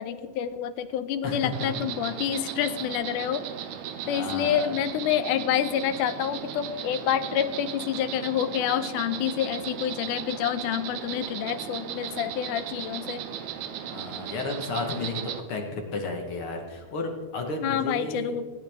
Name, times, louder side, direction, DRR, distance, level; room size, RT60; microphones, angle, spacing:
voice 1, 0.0-3.4 4.1-13.3 17.6-18.5, left 9 dB, 90° left, 12 dB, 2.2 m, -28 dB
Insect, 1.5-15.4, right 9 dB, 70° right, 2.1 m, -37 dB
voice 2, 4.0-4.7 13.8-18.3, left 3 dB, 55° left, 2 dB, 1.8 m, -33 dB
23.0 x 9.3 x 3.5 m, 1.4 s
omnidirectional pair, 3.6 m